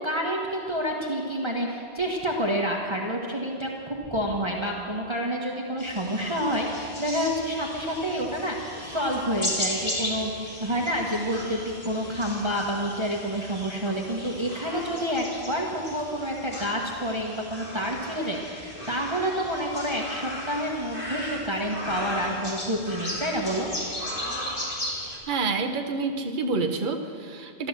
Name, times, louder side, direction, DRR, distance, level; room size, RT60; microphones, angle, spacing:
voice 1, 0.0-10.3 10.6-23.7, equal, 25° right, -1 dB, 1.3 m, -28 dB
sound 1, 5.8-25.2, left 1 dB, 50° left, 3.1 m, -36 dB
voice 2, 25.3-27.7, right 3 dB, 50° right, 4 dB, 1.1 m, -28 dB
13.0 x 13.0 x 7.4 m, 2.4 s
omnidirectional pair, 1.1 m